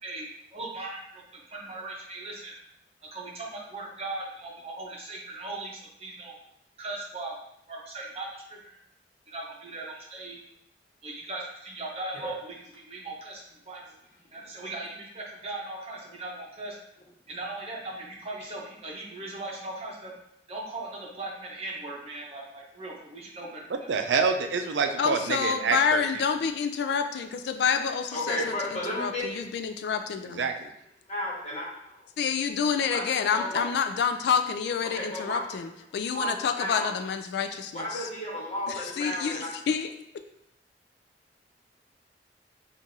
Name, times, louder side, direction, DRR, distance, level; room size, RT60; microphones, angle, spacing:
voice 1, 0.0-2.5 3.1-6.4 6.8-7.3 7.7-8.8 9.3-10.4 11.0-13.9 14.3-16.8 17.3-20.1 20.5-23.9, right 2 dB, 35° right, -2 dB, 0.9 m, -39 dB
voice 2, 23.7-26.0 30.4-30.7, right 5 dB, 80° right, 6 dB, 0.4 m, -27 dB
voice 3, 25.0-30.5 32.2-38.1 38.7-40.2, left 6 dB, 65° left, 8 dB, 0.3 m, -28 dB
voice 4, 28.1-29.2 31.1-31.7 32.9-33.0 33.3-33.6 34.8-35.4 36.1-36.9 37.7-39.5, left 1 dB, 40° left, -5 dB, 1.3 m, -32 dB
5.9 x 2.5 x 2.7 m, 0.77 s
head